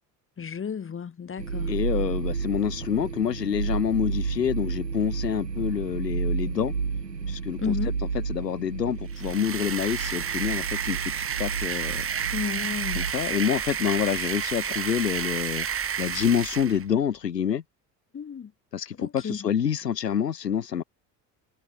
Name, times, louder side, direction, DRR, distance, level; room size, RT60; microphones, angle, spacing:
voice 1, 0.4-1.7 7.6-8.0 12.3-13.1 18.1-18.5 19.0-19.4, left 7 dB, 25° left, 1.9 m, -32 dB
sound 1, 1.4-13.1, right 5 dB, 90° right, 1.2 m, -31 dB
voice 2, 1.7-6.7 7.3-7.7 8.3-11.0 11.4-12.0 12.9-15.7 16.0-17.6 18.7-20.8, left 8 dB, 80° left, 2.1 m, -27 dB
sound 2, 9.1-16.8, right 8 dB, 25° right, 1.8 m, -31 dB
figure-of-eight pair, 60°, 48 cm